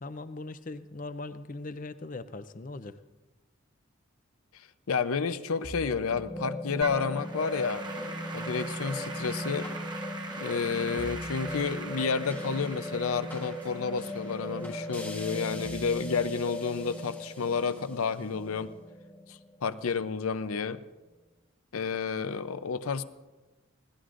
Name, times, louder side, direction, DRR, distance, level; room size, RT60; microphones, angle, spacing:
voice 1, 0.0-3.0, left 2 dB, 40° left, 12 dB, 0.5 m, -40 dB
voice 2, 4.9-7.9 8.3-9.7 10.4-18.7 19.3-20.8 21.7-23.0, left 5 dB, 90° left, 13 dB, 0.6 m, -30 dB
sound 1, 5.6-20.1, equal, 10° left, 1.0 m, -38 dB
Applause / Keyboard (musical), 6.8-16.1, right 3 dB, 20° right, 1.0 m, -42 dB
25.5 x 17.5 x 2.5 m, 1.2 s
head